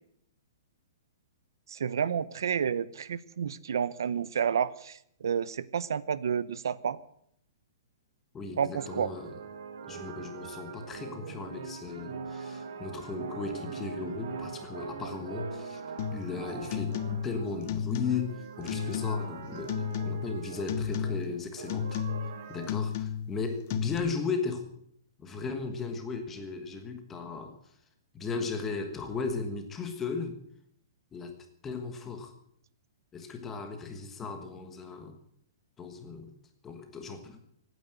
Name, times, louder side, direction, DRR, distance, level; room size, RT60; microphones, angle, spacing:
voice 1, 1.7-7.0 8.6-9.1, right 7 dB, 75° right, 18 dB, 0.7 m, -30 dB
voice 2, 8.3-9.3 9.9-15.8 16.1-22.0 22.5-24.7 25.2-27.6 28.1-30.4 31.1-31.4 31.6-32.3 33.1-35.2 35.8-36.3 36.6-37.4, left 4 dB, 10° left, 6 dB, 1.4 m, -36 dB
sound 1, 8.8-22.7, right 6 dB, 55° right, 2.1 m, -42 dB
sound 2, 16.0-16.3 16.7-17.4 17.7-18.4 18.7-19.3 19.7-20.4 20.7-21.3 21.7-22.4 22.7-23.4 23.7-24.0, left 8 dB, 35° left, 1.0 m, -33 dB
16.5 x 9.4 x 7.9 m, 0.70 s
hypercardioid pair, 175°, 2 cm